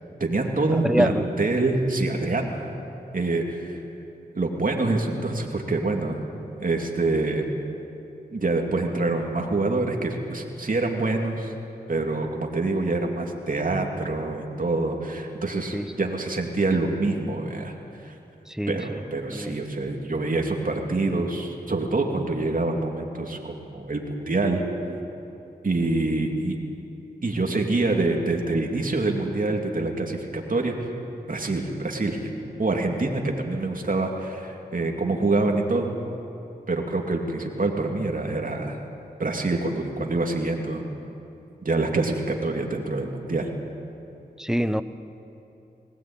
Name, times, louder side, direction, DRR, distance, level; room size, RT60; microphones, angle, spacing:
voice 1, 0.2-2.6 3.1-3.8 4.4-6.2 6.6-7.5 8.3-11.5 11.9-17.7 18.0-18.1 18.7-24.6 25.6-26.5 27.2-30.7 31.3-32.2 32.6-35.9 36.7-38.8 39.2-40.8 41.6-43.5, right 2 dB, 55° right, 1 dB, 2.7 m, -26 dB
voice 2, 0.7-1.3 15.7-15.9 18.5-19.0 19.3-19.6 44.4-44.8, equal, 5° right, 12 dB, 1.0 m, -25 dB
20.5 x 17.0 x 8.9 m, 2.8 s
cardioid pair, 40°, 17 cm